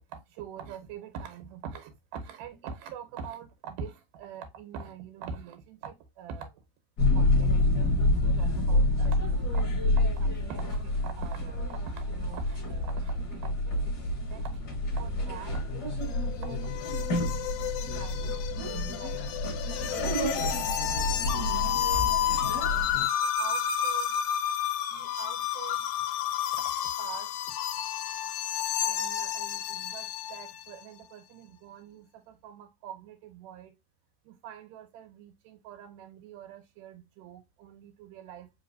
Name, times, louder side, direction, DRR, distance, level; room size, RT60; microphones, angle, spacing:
voice 1, 0.1-6.6 7.0-7.5 8.1-14.0 14.3-14.6 15.0-16.0 16.3-16.6 17.4-18.5 18.7-22.9 23.4-24.2 24.9-25.9 26.5-26.6 27.0-27.3 28.8-33.8 34.2-38.5, right 7 dB, 90° right, 2.5 m, -45 dB
sound 1, 7.0-23.0, left 1 dB, 40° left, 1.6 m, -28 dB
sound 2, 16.0-30.6, left 10 dB, 80° left, 1.8 m, -31 dB
4.9 x 3.0 x 2.6 m
omnidirectional pair, 3.7 m